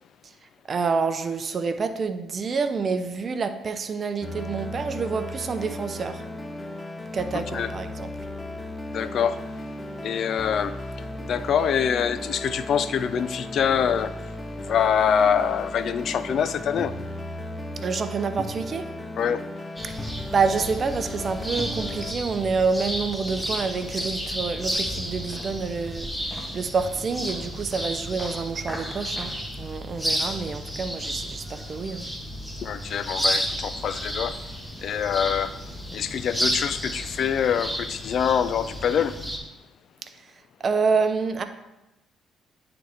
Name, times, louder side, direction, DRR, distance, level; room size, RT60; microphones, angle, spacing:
voice 1, 0.7-6.2 7.1-8.1 17.8-18.9 19.8-32.1 40.0-40.3 40.6-41.4, right 5 dB, 45° right, 0.6 m, -28 dB
sound 1, 4.2-22.1, left 1 dB, 25° left, 0.7 m, -35 dB
voice 2, 7.3-7.7 8.9-9.7 10.0-17.1 19.2-19.4 32.6-39.4, left 8 dB, 65° left, 0.3 m, -25 dB
sound 2, 19.8-39.4, equal, 5° left, 1.2 m, -32 dB
9.3 x 3.9 x 3.4 m
cardioid pair, 80°, 0 cm